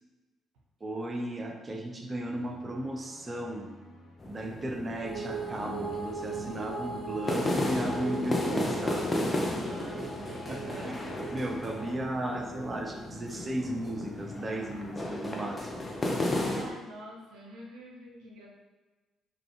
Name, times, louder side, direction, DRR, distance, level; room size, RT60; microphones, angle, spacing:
voice 1, 0.8-3.7 4.3-9.1 10.5-15.9, right 1 dB, 30° right, 2 dB, 0.5 m, -35 dB
sound 1, 2.1-13.4, left 1 dB, 85° left, 1.2 m, -54 dB
sound 2, 4.2-16.7, left 1 dB, 30° left, 0.6 m, -34 dB
sound 3, 5.0-13.8, right 4 dB, 55° right, 1.0 m, -40 dB
voice 2, 9.6-11.0 11.8-11.9 12.6-12.7 16.4-18.5, right 1 dB, 70° right, -3 dB, 0.6 m, -47 dB
3.8 x 2.3 x 3.2 m, 1.3 s
figure-of-eight pair, 45°, 0 cm